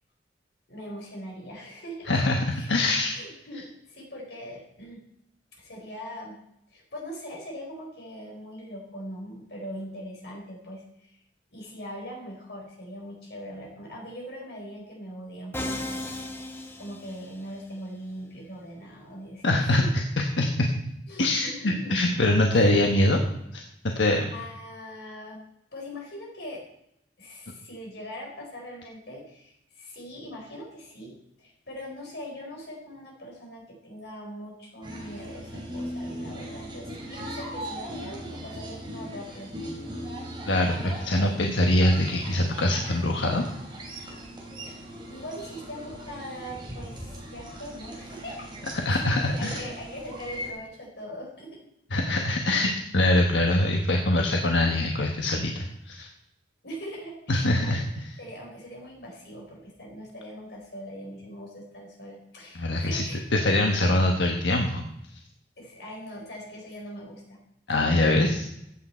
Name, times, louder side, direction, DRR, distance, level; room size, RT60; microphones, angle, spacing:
voice 1, 0.7-2.1 2.5-2.7 3.1-5.0 5.5-6.4 6.7-11.2 11.5-19.9 21.1-22.2 22.5-23.2 23.9-24.0 24.3-25.4 25.7-26.6 27.2-39.5 44.6-44.8 45.1-48.5 48.9-51.6 56.6-57.8 58.2-63.2 65.6-67.4, equal, 65° left, -1 dB, 4.4 m, -41 dB
voice 2, 2.1-3.1 19.4-19.8 20.2-20.7 21.2-23.2 23.8-24.3 40.5-43.4 48.8-49.6 51.9-56.1 57.3-58.1 62.5-63.0 63.3-64.8 67.7-68.5, left 1 dB, 85° left, 2 dB, 1.3 m, -23 dB
Musical instrument, 15.5-17.6, left 1 dB, 15° left, 1.1 m, -35 dB
sound 1, 34.8-50.5, equal, 25° right, 3.2 m, -39 dB
14.5 x 8.8 x 4.4 m, 0.79 s
head